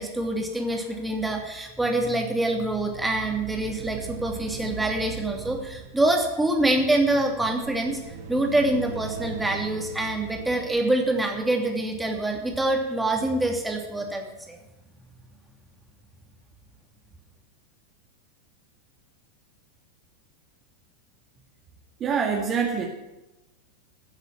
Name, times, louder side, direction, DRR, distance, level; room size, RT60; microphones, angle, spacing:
voice 1, 0.0-8.0 8.3-14.6, right 1 dB, 5° right, 2 dB, 2.8 m, -25 dB
sound 1, 2.5-12.7, right 5 dB, 55° right, 2.1 m, -40 dB
voice 2, 22.0-22.9, right 6 dB, 25° right, 1 dB, 2.0 m, -25 dB
15.5 x 7.9 x 8.9 m, 1.0 s
figure-of-eight pair, 90°, 0 cm